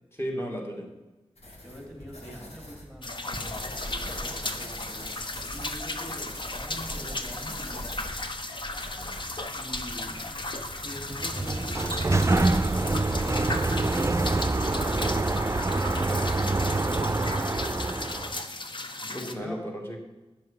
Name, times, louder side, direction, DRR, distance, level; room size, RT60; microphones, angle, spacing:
voice 1, 0.1-0.9 9.0-9.2 14.9-15.3 19.0-20.0, equal, 20° left, 1 dB, 2.7 m, -35 dB
sound 1, 1.4-16.6, left 1 dB, 75° left, 2.4 m, -43 dB
voice 2, 1.6-7.9 9.5-10.3 10.8-13.2 14.6-17.4 19.1-19.6, equal, 5° left, 1 dB, 3.4 m, -44 dB
sound 2, 3.0-19.3, left 2 dB, 50° left, 1.0 m, -36 dB
Sliding door, 11.0-18.4, right 2 dB, 25° right, 0.6 m, -26 dB
10.0 x 7.5 x 5.9 m, 1.1 s
wide cardioid pair, 60°, 11 cm